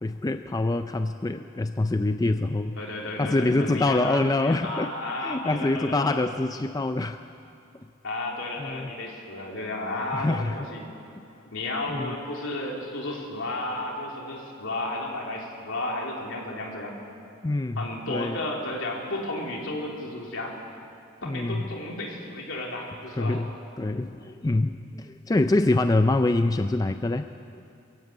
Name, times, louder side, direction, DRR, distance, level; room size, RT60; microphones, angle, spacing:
voice 1, 0.0-2.8 3.2-4.9 5.2-7.2 8.6-8.9 10.1-10.6 11.2-11.3 11.9-12.2 17.4-18.4 21.2-21.7 23.1-23.5 23.8-27.3 27.5-27.6, left 2 dB, 20° left, 9 dB, 0.4 m, -25 dB
voice 2, 2.8-6.3 8.0-10.8 11.4-16.9 17.7-20.6 21.2-23.4, left 2 dB, 70° left, -1 dB, 3.5 m, -33 dB
22.0 x 15.5 x 8.2 m, 2.6 s
head